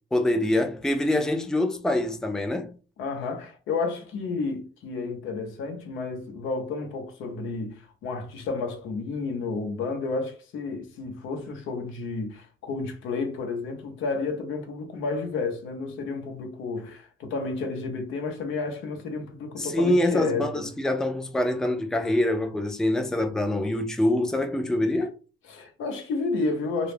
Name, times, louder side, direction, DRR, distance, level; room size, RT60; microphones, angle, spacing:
voice 1, 0.1-2.7 19.6-25.1, left 1 dB, 5° left, 0.4 m, -25 dB
voice 2, 3.0-20.7 25.5-26.9, left 4 dB, 85° left, 0.7 m, -31 dB
2.3 x 2.0 x 3.2 m
cardioid pair, 90°, 20 cm